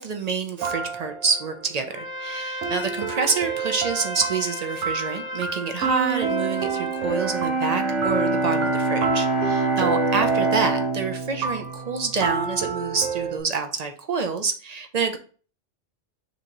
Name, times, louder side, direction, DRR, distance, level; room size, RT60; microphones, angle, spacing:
voice 1, 0.0-15.2, right 5 dB, 45° right, 6 dB, 0.5 m, -27 dB
sound 1, 0.6-2.3 2.6-13.4, right 5 dB, 85° right, 0.9 m, -30 dB
Trumpet, 1.9-7.3, left 1 dB, 20° left, 0.3 m, -35 dB
Bowed string instrument, 7.0-13.0, right 2 dB, 70° right, 1.2 m, -26 dB
6.0 x 2.9 x 2.9 m, 0.40 s
omnidirectional pair, 1.2 m